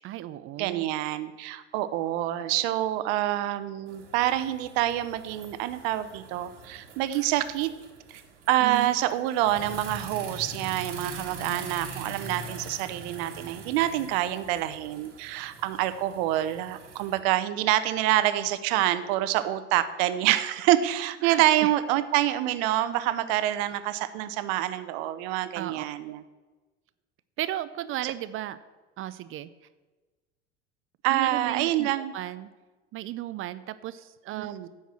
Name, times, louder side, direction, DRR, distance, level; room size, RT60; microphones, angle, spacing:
voice 1, 0.0-0.8 8.6-8.9 20.3-20.4 21.2-21.7 25.5-26.2 27.4-28.6 29.0-29.5 31.1-32.5 32.9-34.7, right 13 dB, 40° right, 14 dB, 0.4 m, -35 dB
voice 2, 0.6-7.7 8.1-8.2 8.5-26.2 28.0-28.1 31.0-32.1 34.4-34.7, right 13 dB, 60° right, 13 dB, 0.8 m, -27 dB
sound 1, 3.9-17.2, right 3 dB, 80° right, 1.5 m, -43 dB
10.0 x 4.7 x 7.4 m, 1.3 s
hypercardioid pair, 75°, 36 cm